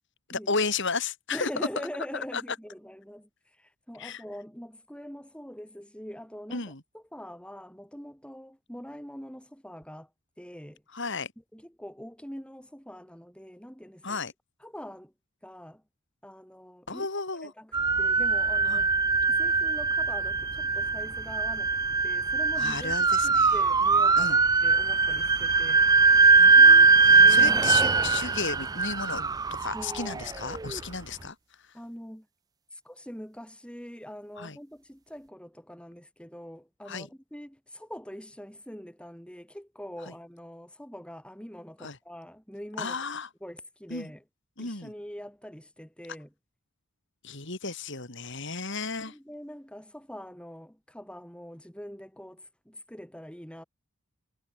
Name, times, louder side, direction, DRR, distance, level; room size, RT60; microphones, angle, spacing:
voice 1, 0.3-1.5 2.3-2.4 4.0-4.2 6.5-6.8 10.9-11.3 14.0-14.3 16.9-17.5 18.7-18.8 22.6-23.5 24.2-24.4 26.3-29.3 29.6-31.4 34.4-34.6 36.9-37.1 41.8-42.0 42.8-43.3 43.9-44.1 44.6-44.9 47.2-49.1, left 4 dB, 55° left, 3.6 m, -33 dB
voice 2, 1.3-10.1 10.4-10.8 11.5-14.2 14.6-15.1 15.4-15.8 16.2-17.1 17.4-18.9 19.3-22.9 23.2-25.8 27.2-28.2 29.7-30.3 31.7-32.3 32.7-43.0 43.4-44.2 44.6-46.3 49.0-53.6, equal, 5° left, 7.5 m, -43 dB
sound 1, 17.7-30.8, right 4 dB, 15° right, 0.3 m, -21 dB
head